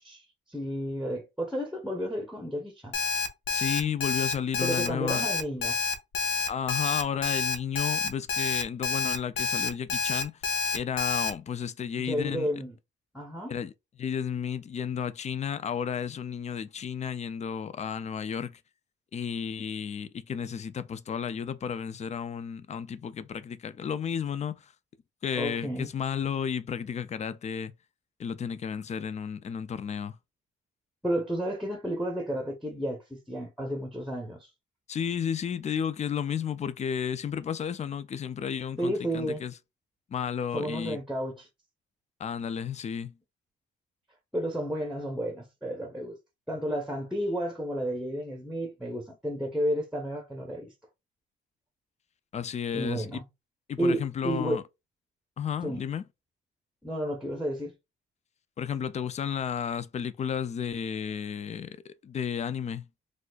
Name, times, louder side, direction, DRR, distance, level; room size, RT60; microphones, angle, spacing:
voice 1, 0.0-3.0 4.6-5.7 12.0-12.8 13.1-13.5 25.4-25.9 31.0-34.5 38.8-39.4 40.5-41.5 44.3-46.2 46.5-50.7 52.7-53.2 53.8-54.6 55.6-55.8 56.8-57.7, equal, ahead, 0.9 m, -32 dB
Alarm, 2.9-11.3, left 4 dB, 75° left, 0.8 m, -28 dB
voice 2, 3.5-5.3 6.5-10.4 10.7-12.5 13.5-13.7 14.0-18.6 19.1-24.7 25.2-27.7 28.2-30.2 34.9-39.5 40.1-41.0 42.2-43.1 52.3-53.1 53.7-54.6 55.4-56.0 58.6-62.8, left 7 dB, 35° left, 0.4 m, -32 dB
4.1 x 2.4 x 2.3 m
cardioid pair, 90°, 20 cm